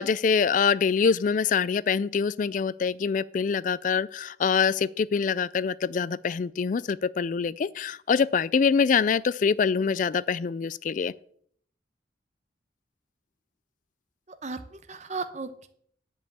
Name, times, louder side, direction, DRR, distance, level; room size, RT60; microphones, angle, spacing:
voice 1, 0.0-11.1, left 6 dB, 45° left, 0.3 m, -25 dB
voice 2, 14.3-15.7, right 4 dB, 35° right, 0.9 m, -36 dB
10.0 x 5.5 x 7.2 m
head